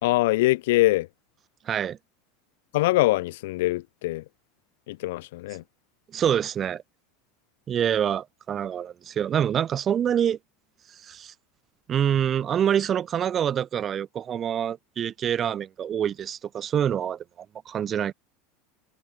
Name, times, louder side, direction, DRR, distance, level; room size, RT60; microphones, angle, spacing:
voice 1, 0.0-1.1 2.7-4.2 4.9-5.6, left 19 dB, 75° left, 1.0 m, -23 dB
voice 2, 1.7-2.0 6.1-6.8 7.7-10.4 11.0-11.3 11.9-17.2 17.7-18.1, right 9 dB, 30° right, 0.4 m, -26 dB
supercardioid pair, 135°, 0 cm